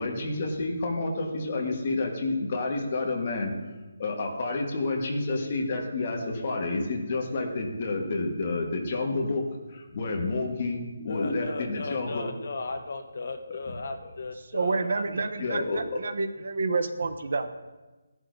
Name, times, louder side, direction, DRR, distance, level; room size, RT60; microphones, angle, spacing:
voice 1, 0.0-3.5 4.0-9.4 9.7-12.3 13.5-13.6 15.4-15.8, left 3 dB, 25° left, 0 dB, 1.4 m, -29 dB
voice 2, 11.1-15.0, left 3 dB, 45° left, 6 dB, 0.9 m, -36 dB
voice 3, 14.5-17.5, right 3 dB, 50° right, 9 dB, 0.7 m, -29 dB
15.5 x 11.0 x 2.7 m, 1.2 s
hypercardioid pair, 175°, 0 cm